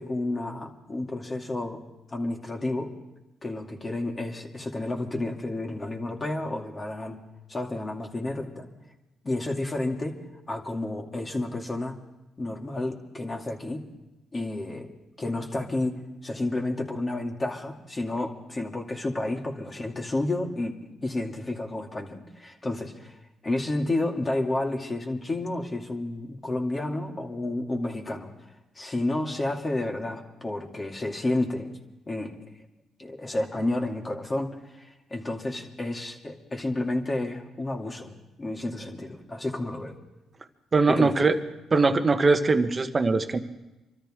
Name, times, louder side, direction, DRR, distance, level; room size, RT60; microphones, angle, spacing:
voice 1, 0.0-1.8 2.1-2.9 3.4-7.2 7.5-8.7 9.2-12.0 12.4-13.9 14.3-14.9 15.2-23.2 23.4-28.3 28.7-31.7 32.1-32.4 33.0-40.0 40.9-41.3, left 2 dB, 25° left, 1 dB, 2.5 m, -31 dB
voice 2, 40.7-41.3 41.7-43.4, right 3 dB, 30° right, 7 dB, 1.3 m, -21 dB
25.5 x 13.5 x 3.7 m, 1.0 s
cardioid pair, 90°, 0 cm